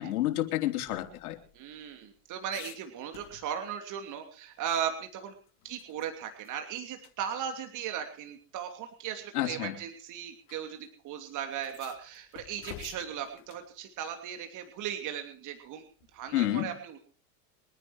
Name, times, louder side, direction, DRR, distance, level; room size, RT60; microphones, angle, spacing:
voice 1, 0.0-1.4 9.3-9.8 16.3-16.7, left 14 dB, 80° left, 5 dB, 3.7 m, -29 dB
sound 1, 0.9-3.8 4.2-4.3 4.7-6.1 6.4-6.6 7.0-7.1 8.2-8.3 9.2-9.5 10.5-10.6 10.8-10.9 11.5-13.7 16.0-16.4, left 13 dB, 55° left, 3.1 m, -51 dB
voice 2, 1.5-5.4 5.6-15.9 16.1-17.0, right 9 dB, 45° right, 5 dB, 3.0 m, -37 dB
25.0 x 10.0 x 4.8 m, 0.40 s
supercardioid pair, 120°, 44 cm